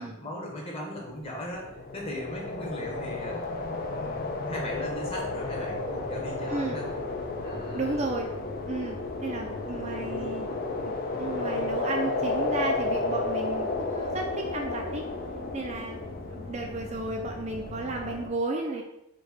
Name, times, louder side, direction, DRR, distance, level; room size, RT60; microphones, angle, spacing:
voice 1, 0.0-3.4 3.9-6.8 7.4-8.1 9.6-10.3 16.0-16.1, left 1 dB, 30° left, -3 dB, 1.1 m, -38 dB
sound 1, 1.3-18.3, left 2 dB, 45° left, 0.5 m, -32 dB
voice 2, 7.7-8.3 8.7-10.5 10.8-15.1 15.5-16.0 16.3-18.8, right 2 dB, 35° right, 1 dB, 0.4 m, -33 dB
4.6 x 2.3 x 4.4 m, 0.84 s
head